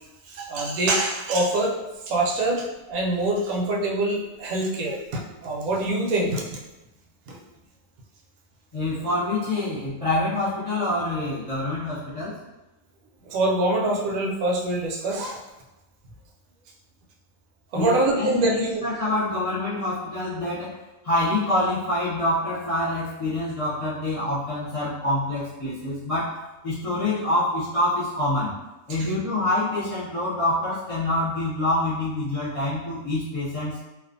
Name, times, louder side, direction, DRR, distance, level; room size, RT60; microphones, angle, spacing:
voice 1, 0.2-1.8 2.1-6.6 7.3-7.4 13.2-15.4 17.7-18.8 29.0-29.1, right 2 dB, 85° right, -1 dB, 1.0 m, -25 dB
voice 2, 8.7-12.4 17.7-20.8 21.0-26.4 26.6-28.5 28.9-33.8, left 1 dB, 50° left, -10 dB, 0.4 m, -26 dB
2.5 x 2.3 x 2.5 m, 1.0 s
omnidirectional pair, 1.5 m